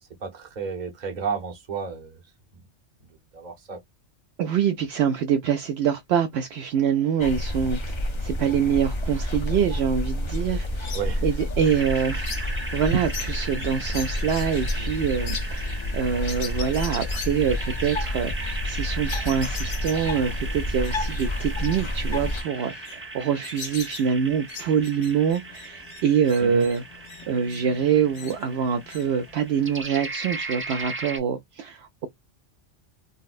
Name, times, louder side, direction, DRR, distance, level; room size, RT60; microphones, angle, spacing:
voice 1, 0.2-2.2 3.3-3.8 10.9-11.4 26.4-26.7, right 5 dB, 45° right, 0.9 m, -32 dB
voice 2, 4.4-26.8 27.3-32.1, right 7 dB, 70° right, 0.8 m, -25 dB
sound 1, 7.2-22.4, left 1 dB, 30° left, 0.6 m, -29 dB
sound 2, 10.0-29.8, left 5 dB, 80° left, 1.2 m, -43 dB
sound 3, 11.6-31.2, right 2 dB, 15° right, 0.5 m, -38 dB
4.0 x 2.1 x 2.4 m
omnidirectional pair, 1.2 m